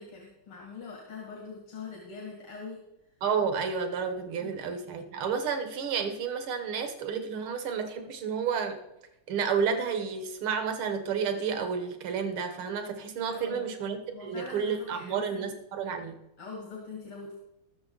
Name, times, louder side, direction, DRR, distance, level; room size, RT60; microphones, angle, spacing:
voice 1, 0.0-2.8 4.4-4.5 4.8-5.0 13.3-13.7 14.1-15.5 16.4-17.4, left 4 dB, 85° left, -1 dB, 3.0 m, -43 dB
voice 2, 3.2-8.8 9.3-16.2, right 6 dB, 85° right, 7 dB, 2.1 m, -31 dB
20.0 x 6.8 x 4.0 m, 0.90 s
omnidirectional pair, 2.3 m